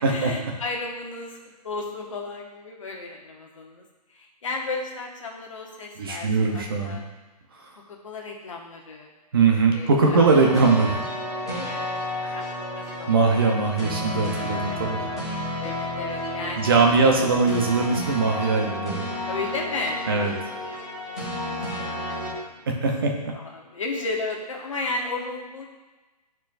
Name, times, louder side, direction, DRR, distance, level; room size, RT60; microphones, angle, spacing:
voice 1, 0.1-1.4 1.6-3.8 4.1-7.0 7.9-9.1 9.7-10.3 11.3-13.5 13.9-14.0 15.6-17.1 19.3-20.4 20.7-22.7 23.3-25.7, left 3 dB, 50° left, 0 dB, 1.1 m, -34 dB
voice 2, 6.0-7.0 9.3-11.0 12.2-12.4 13.1-15.0 16.6-19.1 20.1-20.3 22.7-23.1, right 4 dB, 35° right, 1 dB, 0.8 m, -21 dB
sound 1, 10.2-22.3, left 1 dB, 5° left, 0.3 m, -31 dB
8.1 x 4.5 x 2.6 m, 1.2 s
hypercardioid pair, 180°, 21 cm